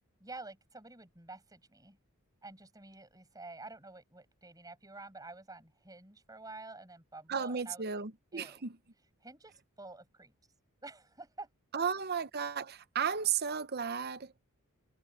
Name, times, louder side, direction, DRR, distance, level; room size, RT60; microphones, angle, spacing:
voice 1, 0.2-2.0 2.4-8.0 8.3-8.6 9.2-10.3 10.8-11.5, right 3 dB, 15° right, 5.9 m, -49 dB
voice 2, 7.3-8.7 11.7-14.3, right 7 dB, 45° right, 0.8 m, -34 dB
head